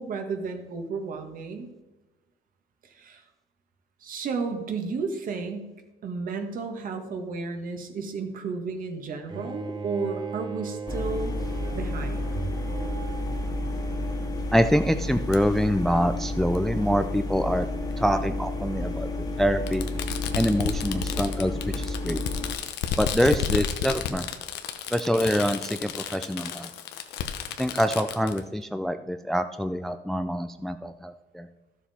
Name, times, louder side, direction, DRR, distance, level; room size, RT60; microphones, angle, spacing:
voice 1, 0.0-1.7 2.8-3.2 4.0-5.7 6.0-11.4 11.7-12.2, right 4 dB, 55° right, 6 dB, 1.5 m, -33 dB
Bowed string instrument, 9.3-14.3, right 4 dB, 25° right, 1.0 m, -39 dB
sound 1, 10.9-22.5, left 1 dB, 25° left, 1.6 m, -31 dB
voice 2, 14.5-17.7 18.0-19.9 20.3-22.2 23.0-24.2 24.9-26.7 27.6-31.5, equal, ahead, 10 dB, 0.3 m, -25 dB
Fireworks, 15.3-15.4 16.6-16.7 17.9-18.0 19.7-28.4, left 9 dB, 80° left, 0.9 m, -32 dB
12.5 x 7.1 x 4.2 m, 1.1 s
cardioid pair, 110°, 17 cm